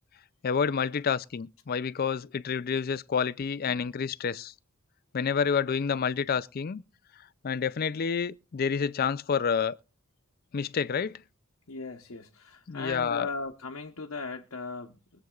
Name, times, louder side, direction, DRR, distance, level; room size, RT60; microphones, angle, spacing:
voice 1, 0.4-4.5 5.1-6.8 7.4-9.8 10.5-11.2 12.7-13.3, left 6 dB, 45° left, 0.4 m, -29 dB
voice 2, 11.7-15.2, left 4 dB, 85° left, 1.0 m, -37 dB
23.0 x 7.8 x 2.4 m
head